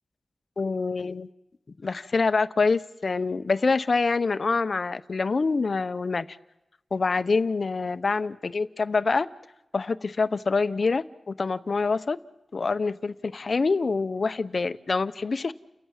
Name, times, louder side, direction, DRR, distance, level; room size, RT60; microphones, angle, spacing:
voice 1, 0.6-1.3 1.8-6.4 6.9-9.3 9.7-12.2 12.5-15.5, left 4 dB, 55° left, 13 dB, 0.7 m, -26 dB
30.0 x 14.0 x 8.8 m, 0.96 s
wide cardioid pair, 115°, 0 cm